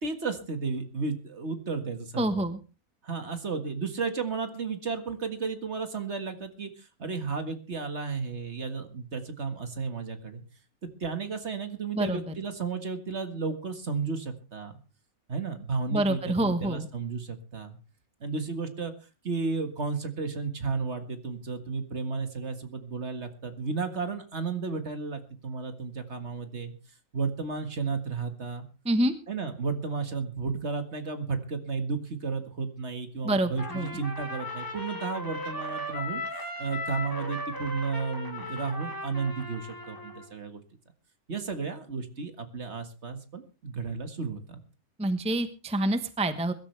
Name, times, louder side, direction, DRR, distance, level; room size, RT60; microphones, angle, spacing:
voice 1, 0.0-2.5 3.0-10.4 11.0-14.8 15.3-17.8 18.2-18.9 19.2-26.7 27.1-28.7 29.3-40.6 41.3-44.6, right 4 dB, 50° right, 8 dB, 1.9 m, -33 dB
voice 2, 2.2-2.6 11.9-12.3 15.9-16.9 28.8-29.1 33.2-34.0 45.0-46.5, right 1 dB, 5° right, 10 dB, 0.9 m, -27 dB
Trumpet, 33.6-40.3, left 1 dB, 15° left, 2.5 m, -37 dB
22.5 x 12.5 x 3.3 m, 0.32 s
omnidirectional pair, 1.5 m